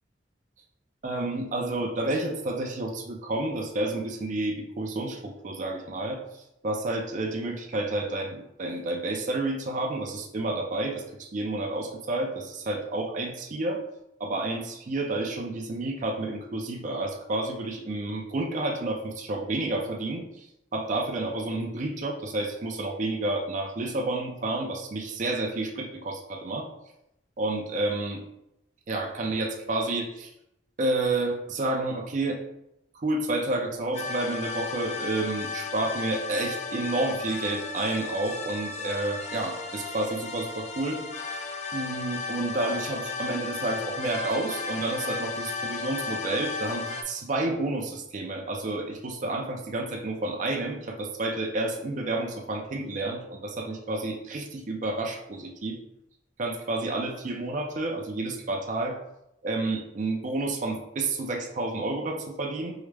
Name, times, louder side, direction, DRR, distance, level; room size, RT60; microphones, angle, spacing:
voice 1, 1.0-13.8 14.2-20.5 20.7-26.7 27.4-28.2 28.9-30.3 30.8-32.4 32.9-41.0 41.7-55.8 56.4-59.0 59.4-62.7, right 2 dB, 45° right, 1 dB, 0.5 m, -30 dB
sound 1, 33.9-47.0, left 4 dB, 40° left, 0.4 m, -34 dB
4.7 x 2.1 x 3.2 m, 0.83 s
head